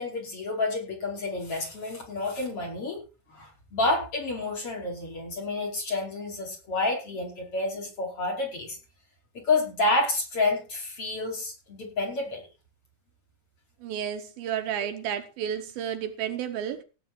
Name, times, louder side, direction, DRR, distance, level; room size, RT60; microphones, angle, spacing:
voice 1, 0.0-3.0 3.3-8.8 9.3-12.4, left 2 dB, 35° left, 5.7 m, -29 dB
voice 2, 13.8-16.8, right 9 dB, 75° right, 2.6 m, -32 dB
17.0 x 9.0 x 4.6 m
omnidirectional pair, 4.5 m